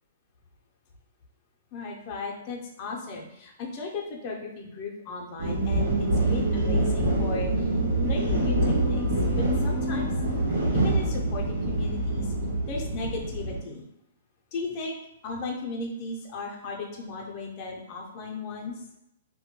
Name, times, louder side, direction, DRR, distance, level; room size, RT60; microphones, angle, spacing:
voice 1, 1.7-7.7 8.0-9.0 9.4-10.1 10.7-12.3 12.7-13.8 14.5-15.0 15.2-18.8, left 3 dB, 35° left, -1 dB, 0.5 m, -36 dB
sound 1, 5.4-13.6, right 1 dB, 75° right, 1.0 m, -25 dB
2.2 x 2.1 x 2.9 m, 0.81 s
hypercardioid pair, 150°, 0 cm